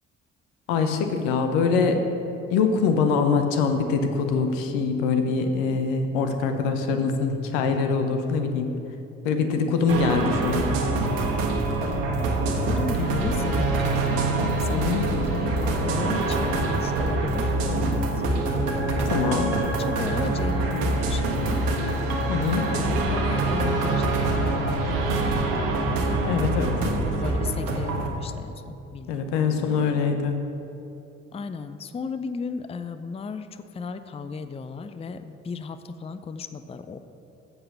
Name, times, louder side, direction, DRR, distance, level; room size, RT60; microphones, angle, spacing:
voice 1, 0.7-2.0 2.5-8.7 9.2-10.6 14.7-15.1 19.1-19.6 22.3-22.7 26.2-27.0 29.1-30.4, left 5 dB, 75° left, 6 dB, 0.9 m, -24 dB
sound 1, 9.9-28.1, right 2 dB, 75° right, 1.2 m, -25 dB
voice 2, 12.5-14.3 14.6-18.5 19.3-21.7 22.8-26.2 26.9-29.8 31.3-37.0, left 5 dB, 15° left, 11 dB, 0.5 m, -35 dB
7.8 x 6.8 x 6.6 m, 2.8 s
hypercardioid pair, 45°, 35 cm